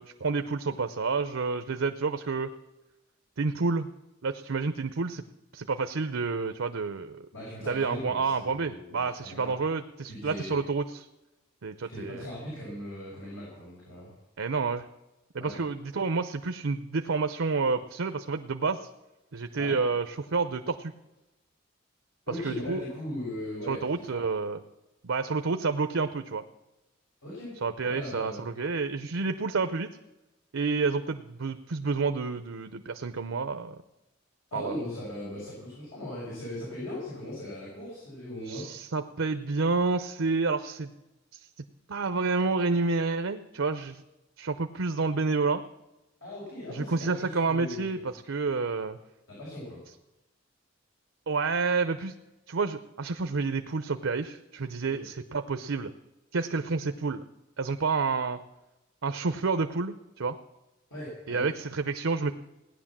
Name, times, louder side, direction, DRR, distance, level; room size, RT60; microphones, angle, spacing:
voice 1, 0.0-2.5 3.4-3.9 4.2-5.2 5.5-7.3 7.7-11.1 11.6-12.3 14.4-14.8 15.3-18.9 19.3-20.9 22.4-22.8 23.7-24.6 25.0-26.4 27.6-29.9 30.5-33.7 34.5-34.8 38.5-40.9 41.3-41.5 41.9-44.0 44.4-45.6 46.7-49.0 51.3-52.1 52.5-55.9 56.3-57.2 57.6-58.4 59.0-60.4 61.3-62.3, right 4 dB, 85° right, 9 dB, 0.7 m, -29 dB
voice 2, 7.3-9.6 10.1-10.5 11.9-14.1 15.4-15.5 19.6-19.8 22.3-23.8 24.1-24.3 27.2-27.5 27.8-28.4 34.5-38.7 46.2-48.1 49.3-49.8 54.8-55.0 60.9-61.5, left 1 dB, 80° left, -5 dB, 6.1 m, -39 dB
17.5 x 10.5 x 7.4 m, 0.98 s
head